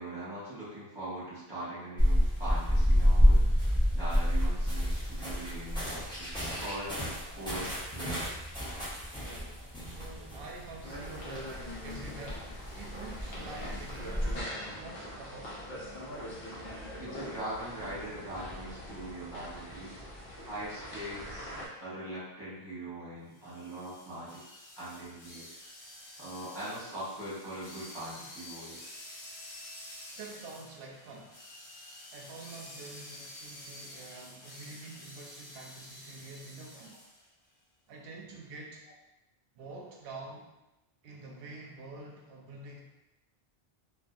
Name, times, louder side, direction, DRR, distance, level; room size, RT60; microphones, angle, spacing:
voice 1, 0.0-7.0 7.4-8.4 17.0-20.0 20.4-21.5 21.8-24.4 24.8-25.5 26.2-28.8, right 1 dB, 25° right, -10 dB, 1.2 m, -41 dB
sound 1, 2.0-14.4, equal, 5° left, 0.6 m, -29 dB
voice 2, 9.2-12.5 12.7-15.6 30.1-31.4 32.1-37.0 37.9-38.8 39.5-40.5 41.0-42.8, right 3 dB, 70° right, -1 dB, 0.7 m, -47 dB
sound 2, 10.8-21.7, equal, 70° left, 0.9 m, -43 dB
sound 3, 23.3-37.3, left 1 dB, 45° left, 0.5 m, -49 dB
2.6 x 2.4 x 2.3 m, 0.97 s
omnidirectional pair, 1.0 m